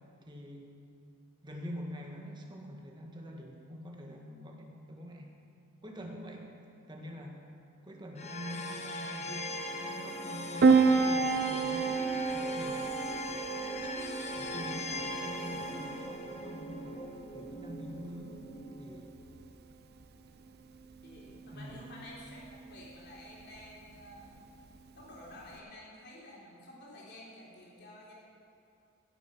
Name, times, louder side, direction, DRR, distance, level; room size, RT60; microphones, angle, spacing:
voice 1, 0.2-0.8 1.4-5.3 5.8-6.6 6.9-7.5 7.8-12.9 14.3-18.5 18.8-19.1 21.5-22.0, equal, 20° right, 1 dB, 1.4 m, -45 dB
sound 1, 8.2-19.2, left 1 dB, 30° left, 1.0 m, -39 dB
Piano, 10.6-25.6, right 4 dB, 45° right, 0.5 m, -32 dB
voice 2, 21.0-24.4 24.9-28.1, left 1 dB, 50° left, -4 dB, 3.1 m, -51 dB
15.5 x 6.7 x 6.1 m, 2.5 s
head